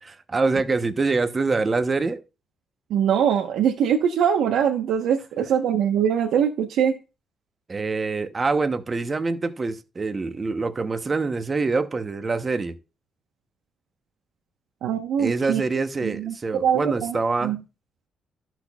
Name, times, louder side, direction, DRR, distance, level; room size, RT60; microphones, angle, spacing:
voice 1, 0.0-2.2 7.7-12.8 15.2-17.5, right 3 dB, 25° right, 0.8 m, -25 dB
voice 2, 2.9-7.0 14.8-15.6 16.0-17.6, right 8 dB, 90° right, 0.9 m, -23 dB
13.5 x 6.0 x 2.3 m
cardioid pair, 130°, 0 cm